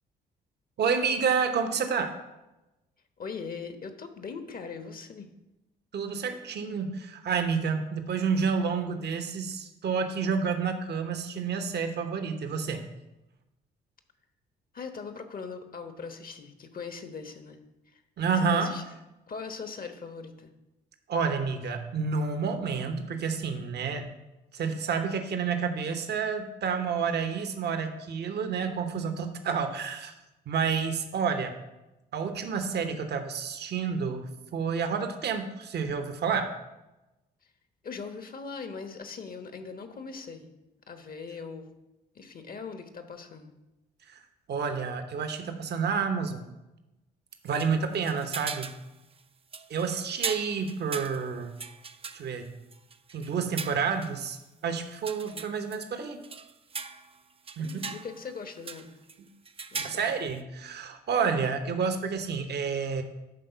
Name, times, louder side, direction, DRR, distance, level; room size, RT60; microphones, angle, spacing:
voice 1, 0.8-2.1 5.9-12.9 18.2-18.7 21.1-24.2 24.5-30.1 30.5-31.5 32.1-36.5 44.1-44.2 44.5-46.5 47.4-48.7 49.7-51.5 52.1-52.5 53.1-54.4 54.6-56.2 57.6-57.9 59.2-59.3 59.8-63.0, right 6 dB, 60° right, 7 dB, 1.1 m, -29 dB
voice 2, 3.2-5.3 14.7-17.6 17.9-18.0 18.3-18.8 19.3-20.5 37.8-40.5 40.9-41.7 42.1-43.5 47.5-48.1 57.6-59.0 59.7-60.2, left 5 dB, 45° left, 7 dB, 1.1 m, -40 dB
sound 1, 47.5-48.9 49.2-49.3 49.5-54.1 54.8-55.8 56.2-57.2 57.5-58.4 58.6-59.2 59.5-60.3, right 5 dB, 30° right, 0.5 m, -39 dB
11.0 x 3.7 x 5.8 m, 1.0 s
hypercardioid pair, 50°, 20 cm